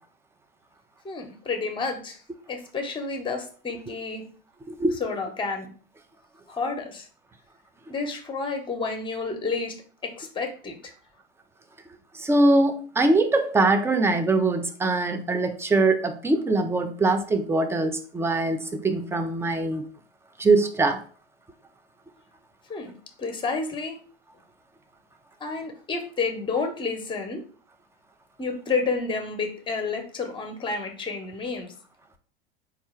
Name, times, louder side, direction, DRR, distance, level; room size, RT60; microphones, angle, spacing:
voice 1, 1.0-2.2 2.5-4.2 5.0-5.7 6.5-7.1 7.9-9.8 10.0-10.8 22.7-22.9 23.2-24.0 25.4-27.4 28.4-31.7, left 4 dB, 15° left, 5 dB, 1.0 m, -30 dB
voice 2, 4.7-5.0 12.2-19.8 20.4-21.0, right 2 dB, 10° right, 7 dB, 0.5 m, -22 dB
4.4 x 2.5 x 4.4 m, 0.43 s
hypercardioid pair, 90°, 30 cm